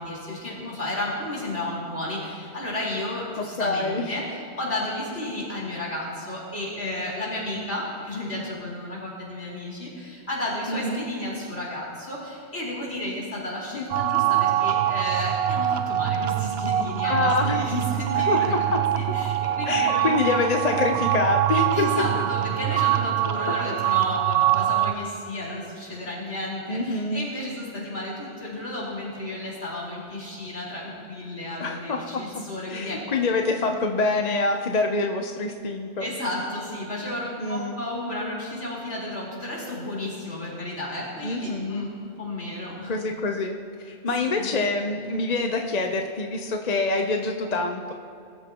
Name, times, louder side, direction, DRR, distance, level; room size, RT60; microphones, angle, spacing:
voice 1, 0.0-18.6 18.9-20.6 21.7-33.0 33.6-33.7 36.0-43.0 44.3-44.5, left 1 dB, 65° left, -5 dB, 4.4 m, -32 dB
voice 2, 3.4-4.1 10.7-11.0 13.7-13.8 17.0-17.6 18.3-18.8 19.7-22.0 26.7-27.3 31.6-32.2 32.7-36.1 37.4-37.8 41.2-41.8 42.9-47.9, left 3 dB, 40° left, 3 dB, 0.8 m, -26 dB
sound 1, 13.9-24.9, right 12 dB, 70° right, 0.8 m, -24 dB
22.0 x 13.5 x 3.0 m, 2.5 s
omnidirectional pair, 1.2 m